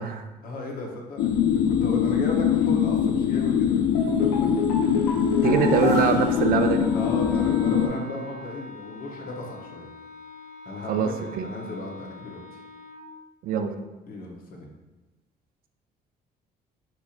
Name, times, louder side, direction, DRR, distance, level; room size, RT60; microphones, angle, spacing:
voice 1, 0.4-3.8 4.2-4.3 4.8-5.6 6.9-9.9 10.6-12.6 14.1-14.7, left 2 dB, 60° left, 0 dB, 1.0 m, -36 dB
sound 1, 1.2-7.9, left 8 dB, 75° left, 0.4 m, -23 dB
sound 2, 3.9-7.4 7.7-7.8, left 2 dB, 90° left, 1.1 m, -31 dB
voice 2, 5.4-6.9 10.9-11.1 11.4-11.5 13.4-13.7, right 7 dB, 60° right, 7 dB, 0.4 m, -23 dB
Wind instrument woodwind instrument, 6.7-13.1, left 2 dB, 25° right, 1.0 m, -43 dB
4.4 x 4.2 x 2.5 m, 1.1 s
cardioid pair, 110°, 17 cm